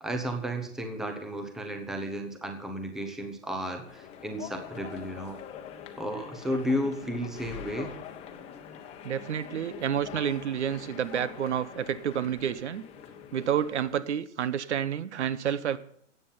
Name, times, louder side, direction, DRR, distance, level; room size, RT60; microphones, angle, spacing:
voice 1, 0.0-5.4 6.0-7.9, equal, ahead, 6 dB, 0.8 m, -33 dB
sound 1, 3.9-14.0, left 9 dB, 15° left, 1.2 m, -44 dB
voice 2, 9.0-12.8 13.3-15.8, right 9 dB, 65° right, 16 dB, 1.1 m, -29 dB
15.0 x 9.0 x 5.6 m, 0.65 s
hypercardioid pair, 150°, 38 cm